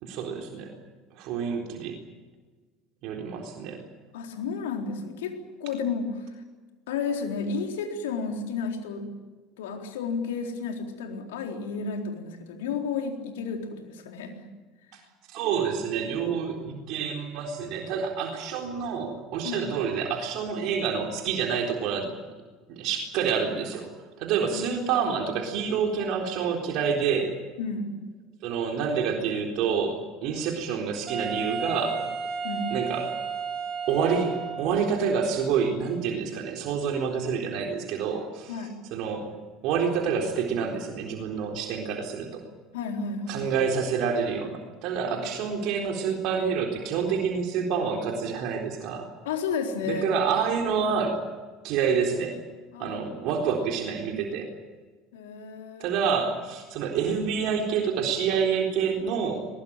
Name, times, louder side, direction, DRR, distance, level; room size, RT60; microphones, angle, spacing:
voice 1, 0.0-0.7 1.1-2.0 3.0-3.8 14.9-15.0 15.3-22.1 22.7-23.9 24.2-27.4 28.4-32.0 32.7-33.0 33.9-38.6 38.9-39.3 39.6-42.4 43.3-49.1 49.9-51.2 51.6-52.4 52.8-54.5 55.8-59.5, right 6 dB, 60° right, 1 dB, 3.9 m, -28 dB
voice 2, 4.1-6.3 6.9-9.1 9.6-14.4 19.4-19.7 24.5-24.7 27.6-28.0 32.4-32.7 38.5-38.7 42.7-43.5 49.2-50.1 52.7-53.0 55.1-56.0, left 5 dB, 80° left, 3 dB, 4.0 m, -32 dB
Wind instrument woodwind instrument, 31.1-35.0, right 5 dB, 35° right, 7.1 m, -32 dB
22.0 x 20.5 x 8.9 m, 1.3 s
hypercardioid pair, 75°, 0 cm